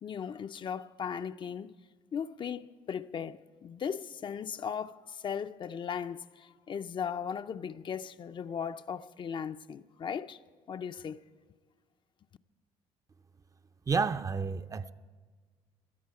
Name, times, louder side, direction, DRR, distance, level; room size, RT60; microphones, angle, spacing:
voice 1, 0.0-1.7 2.1-10.4 10.7-11.2, left 7 dB, 40° left, 0.5 m, -37 dB
voice 2, 13.9-14.9, right 5 dB, 25° right, 0.5 m, -30 dB
18.0 x 12.5 x 4.8 m
supercardioid pair, 80°, 12 cm